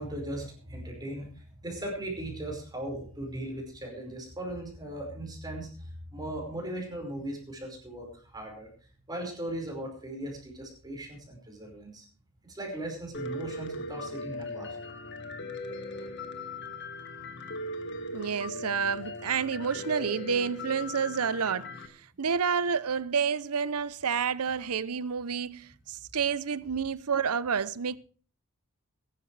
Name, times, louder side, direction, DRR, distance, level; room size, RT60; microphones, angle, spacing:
voice 1, 0.0-8.7 9.1-12.0 12.4-14.7 16.0-16.1, right 1 dB, 20° right, 5.1 m, -38 dB
Piano, 13.1-21.9, left 2 dB, 50° left, 1.9 m, -39 dB
voice 2, 18.1-21.7 22.2-28.0, right 6 dB, 85° right, 0.7 m, -29 dB
22.5 x 11.5 x 3.3 m
head